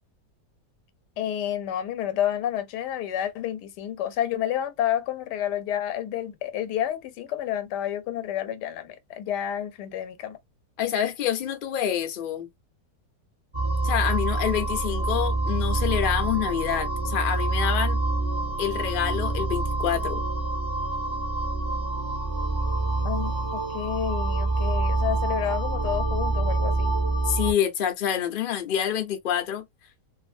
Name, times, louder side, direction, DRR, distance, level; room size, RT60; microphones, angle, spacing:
voice 1, 1.2-10.4 23.0-26.9, left 11 dB, 85° left, 1.2 m, -30 dB
voice 2, 10.8-12.5 13.8-18.0 18.6-20.2 27.2-29.7, left 10 dB, 60° left, 0.5 m, -27 dB
sound 1, 13.5-27.5, right 2 dB, 30° right, 0.5 m, -26 dB
2.7 x 2.5 x 2.4 m
omnidirectional pair, 1.8 m